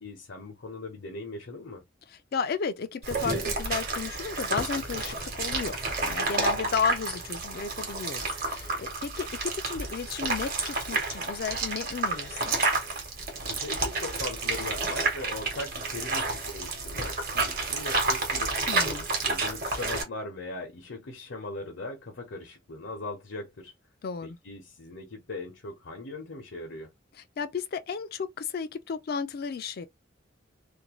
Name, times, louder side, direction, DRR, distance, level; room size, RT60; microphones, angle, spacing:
voice 1, 0.0-1.8 13.5-18.7 19.2-23.7 24.2-26.9, left 2 dB, 80° left, 0.8 m, -39 dB
voice 2, 2.1-12.6 18.7-19.1 24.0-24.4 27.4-29.9, left 6 dB, 55° left, 0.4 m, -33 dB
sound 1, 3.0-20.0, right 3 dB, 50° right, 1.0 m, -30 dB
2.5 x 2.2 x 2.9 m
head